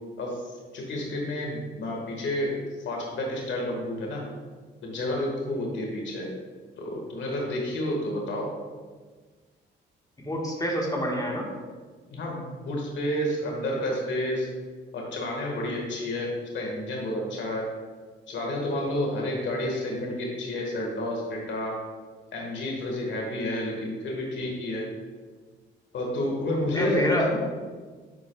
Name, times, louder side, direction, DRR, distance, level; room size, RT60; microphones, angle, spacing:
voice 1, 0.2-2.6 2.8-4.2 4.8-6.3 6.8-8.5 12.1-14.5 14.9-17.7 18.3-21.8 22.3-24.8 25.9-27.4, left 1 dB, 65° left, -1 dB, 1.6 m, -30 dB
voice 2, 10.2-11.4 26.7-27.4, equal, 20° left, -1 dB, 1.4 m, -26 dB
9.4 x 4.7 x 2.3 m, 1.4 s
cardioid pair, 90°, 20 cm